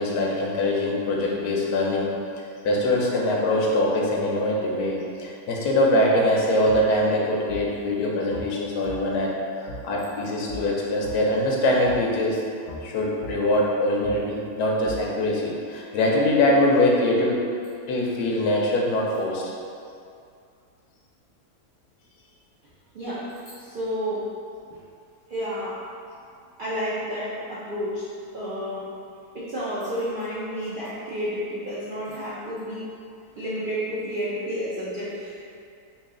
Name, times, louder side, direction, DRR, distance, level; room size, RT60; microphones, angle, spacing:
voice 1, 0.0-2.1 2.6-12.4 12.8-17.5 17.9-19.5, left 1 dB, 90° left, -2 dB, 1.2 m, -23 dB
sound 1, 6.7-6.8 7.5-7.6 8.3-8.5 8.9-9.0 9.7-9.8 10.5-10.6 11.0-11.2 11.9-12.0 12.7-12.8 13.2-13.4 14.0-14.2 14.9-15.0, left 1 dB, 60° left, 0.8 m, -37 dB
voice 2, 22.9-24.3 24.7-24.8 25.3-25.8 26.6-28.1 28.3-28.9 29.3-32.9 33.4-35.4, equal, 75° right, -10 dB, 0.4 m, -30 dB
3.1 x 2.8 x 3.6 m, 2.4 s
omnidirectional pair, 1.7 m